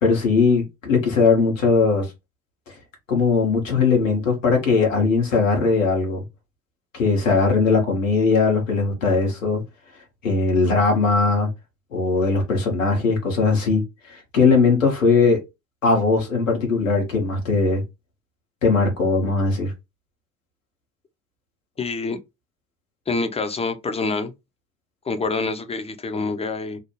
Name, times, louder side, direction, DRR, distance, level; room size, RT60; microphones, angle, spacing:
voice 1, 0.0-2.1 2.7-2.8 3.1-6.2 6.9-9.6 10.2-11.5 11.9-15.4 15.8-17.8 18.6-19.7, left 4 dB, 90° left, 0.8 m, -19 dB
voice 2, 21.8-22.2 23.1-24.3 25.1-26.8, left 3 dB, 15° left, 0.5 m, -26 dB
2.5 x 2.0 x 3.0 m
figure-of-eight pair, 45°, 38 cm